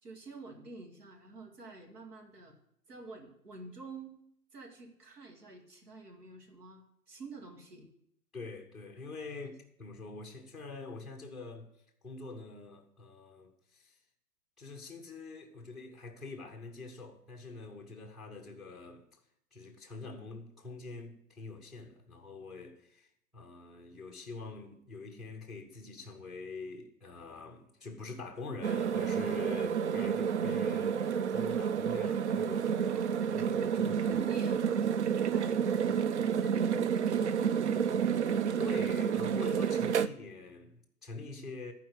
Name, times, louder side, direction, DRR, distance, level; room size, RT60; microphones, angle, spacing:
voice 1, 0.0-2.6 2.9-4.1 4.5-7.9 32.8-33.4 33.8-34.8 35.3-37.7, right 3 dB, 75° right, 2.5 m, -49 dB
voice 2, 8.3-11.7 12.0-14.0 14.6-19.0 19.5-32.9 33.3-34.2 38.6-41.7, left 3 dB, ahead, 0.6 m, -45 dB
sound 1, 28.6-40.1, right 7 dB, 50° right, 0.5 m, -30 dB
11.5 x 4.6 x 7.9 m
figure-of-eight pair, 125°, 47 cm